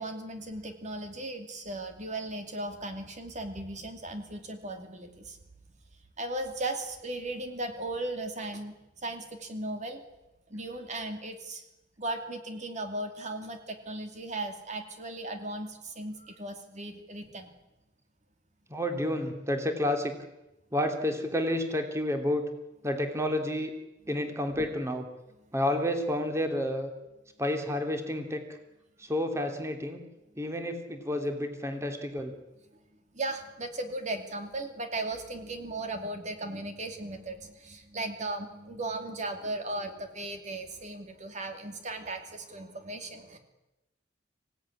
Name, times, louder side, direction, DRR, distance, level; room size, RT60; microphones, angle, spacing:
voice 1, 0.0-5.4 6.2-10.0 10.5-11.7 12.0-17.5 33.1-43.4, right 2 dB, 40° right, 6 dB, 2.6 m, -37 dB
voice 2, 18.7-20.1 20.7-22.4 22.8-23.7 24.1-25.0 25.5-26.9 27.4-28.4 29.0-30.0 30.4-32.3, left 1 dB, 15° right, 5 dB, 2.6 m, -30 dB
25.5 x 17.0 x 9.9 m, 0.96 s
head